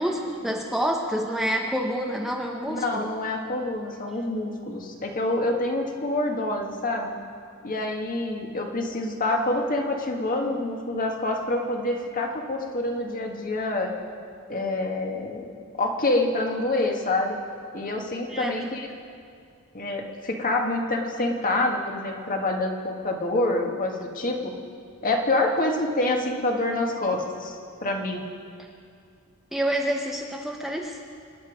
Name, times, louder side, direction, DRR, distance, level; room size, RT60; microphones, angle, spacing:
voice 1, 0.0-3.1 18.3-18.7 29.5-31.0, equal, ahead, 1 dB, 0.8 m, -28 dB
voice 2, 2.7-7.1 7.6-13.9 14.5-17.4 17.7-18.9 19.7-24.5 25.0-28.2, left 2 dB, 40° left, 1 dB, 1.7 m, -27 dB
25.5 x 9.9 x 5.1 m, 2.3 s
head